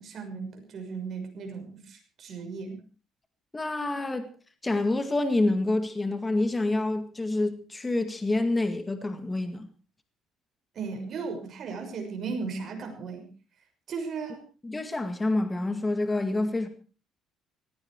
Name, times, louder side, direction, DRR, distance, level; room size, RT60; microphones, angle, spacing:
voice 1, 0.0-2.8 10.7-13.3 13.9-14.4, right 4 dB, 50° right, 6.1 m, -36 dB
voice 2, 3.5-4.3 4.6-9.7 14.6-16.7, left 2 dB, 15° left, 2.0 m, -27 dB
18.0 x 15.5 x 4.7 m
cardioid pair, 105°, 0 cm